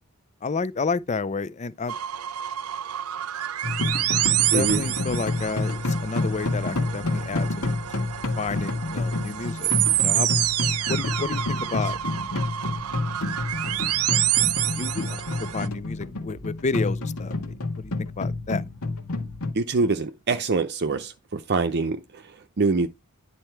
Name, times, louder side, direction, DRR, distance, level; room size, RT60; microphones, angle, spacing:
voice 1, 0.4-1.9 4.5-7.7 8.4-9.7 10.0-10.3 10.9-12.0 14.7-15.2 15.5-18.6, left 4 dB, 30° left, 0.5 m, -30 dB
sound 1, 1.9-15.7, right 13 dB, 90° right, 0.7 m, -28 dB
sound 2, 3.6-19.5, left 2 dB, 80° left, 1.9 m, -29 dB
voice 2, 4.5-4.8 19.5-22.2 22.6-22.9, right 3 dB, 50° right, 0.6 m, -24 dB
10.0 x 4.3 x 4.5 m
head